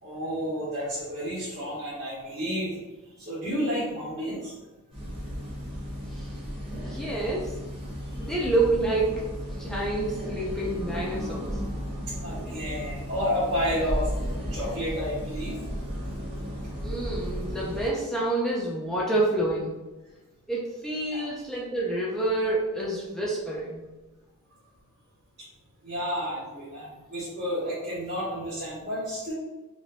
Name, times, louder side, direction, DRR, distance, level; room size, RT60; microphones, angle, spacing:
voice 1, 0.0-2.7 3.2-4.5 12.2-14.0 14.5-15.6 21.1-21.3 25.8-29.3, equal, 50° right, -11 dB, 1.3 m, -31 dB
sound 1, 4.9-17.9, equal, 25° right, 1.3 m, -34 dB
voice 2, 6.8-7.5 8.2-9.3 9.6-11.5 16.8-19.7 20.5-23.9, right 2 dB, ahead, -6 dB, 0.5 m, -28 dB
4.9 x 2.5 x 2.2 m, 1.2 s
head